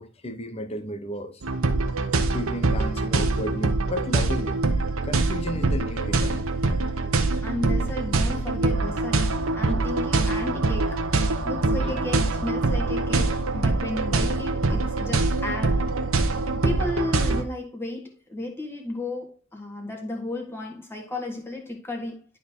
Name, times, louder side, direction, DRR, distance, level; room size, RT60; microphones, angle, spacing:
voice 1, 0.0-1.4 2.3-4.6 5.0-6.4 7.0-7.2 9.7-9.8 11.8-12.0 15.0-15.1, left 1 dB, 30° left, 0.9 m, -34 dB
sound 1, 1.4-17.4, right 3 dB, 70° right, 1.0 m, -24 dB
voice 2, 7.4-11.0 11.4-15.9 16.5-22.2, left 2 dB, 10° left, 1.7 m, -34 dB
12.0 x 4.2 x 2.8 m
head